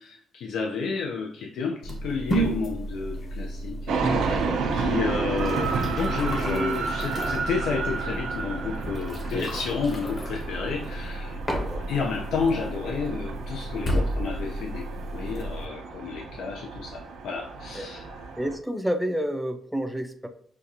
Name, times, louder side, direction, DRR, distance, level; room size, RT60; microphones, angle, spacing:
voice 1, 0.0-11.4 11.9-18.1, left 5 dB, 75° left, 0 dB, 0.6 m, -31 dB
sound 1, 1.8-15.6, right 1 dB, 25° left, 0.9 m, -32 dB
sound 2, 3.9-18.6, right 4 dB, 90° right, 0.6 m, -32 dB
voice 2, 4.3-4.6 6.5-6.8 9.3-9.5 11.5-11.9 13.9-14.1 17.7-17.9 18.4-20.3, equal, 5° right, 6 dB, 0.5 m, -30 dB
6.3 x 2.4 x 2.7 m, 0.65 s
cardioid pair, 145°, 0 cm